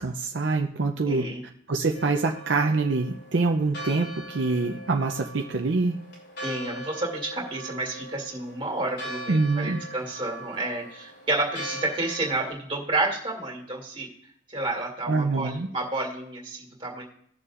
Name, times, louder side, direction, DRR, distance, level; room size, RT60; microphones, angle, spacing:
voice 1, 0.0-1.3 1.7-6.0 9.3-9.8 15.1-15.7, right 3 dB, 65° right, 3 dB, 0.6 m, -25 dB
voice 2, 1.1-1.4 6.4-14.1 14.5-17.0, right 2 dB, 25° right, -1 dB, 2.4 m, -30 dB
Church bell, 1.9-12.5, right 1 dB, 65° left, 2.9 m, -40 dB
18.0 x 6.9 x 2.5 m, 0.68 s
head